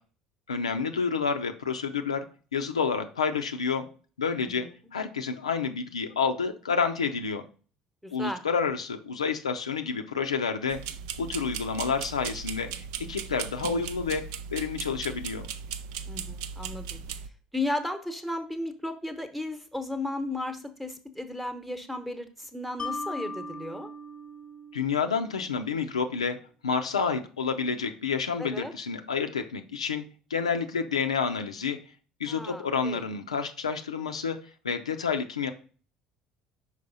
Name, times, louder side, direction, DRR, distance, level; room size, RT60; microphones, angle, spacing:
voice 1, 0.5-2.3 2.5-3.9 4.2-4.7 4.9-7.4 8.1-10.8 11.2-14.2 14.5-15.5 24.7-26.4 26.6-30.0 30.3-31.8 32.2-34.4 34.6-35.5, left 5 dB, 80° left, 6 dB, 0.4 m, -29 dB
voice 2, 4.4-4.7 8.0-8.4 16.1-17.0 17.5-23.9 28.4-28.7 32.3-33.0, left 2 dB, ahead, 7 dB, 1.0 m, -35 dB
sound 1, 10.7-17.3, right 7 dB, 65° right, 0.4 m, -37 dB
Mallet percussion, 22.8-26.1, left 1 dB, 30° left, 0.8 m, -39 dB
5.6 x 4.6 x 4.0 m, 0.39 s
figure-of-eight pair, 60°, 3 cm